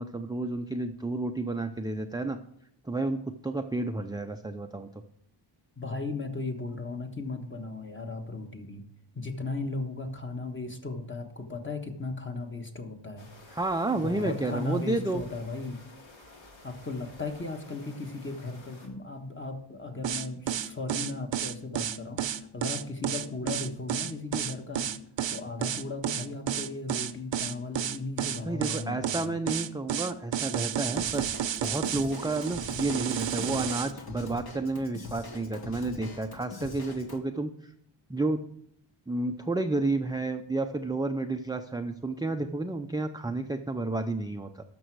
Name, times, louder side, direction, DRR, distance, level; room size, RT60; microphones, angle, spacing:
voice 1, 0.0-2.4 2.8-4.9 13.5-15.2 28.4-31.3 31.6-37.5 38.1-38.4 39.1-44.6, right 2 dB, 10° right, 6 dB, 0.4 m, -31 dB
voice 2, 5.8-8.8 9.1-13.3 14.0-15.8 16.6-24.9 25.3-29.4, left 3 dB, 25° left, 5 dB, 1.3 m, -36 dB
sound 1, 13.2-18.9, left 2 dB, 65° left, 2.7 m, -52 dB
sound 2, 20.0-33.9, right 9 dB, 65° right, 0.7 m, -31 dB
Drum kit / Drum, 31.0-37.2, left 3 dB, 50° left, 1.5 m, -43 dB
13.0 x 6.1 x 4.7 m, 0.70 s
wide cardioid pair, 100°, 49 cm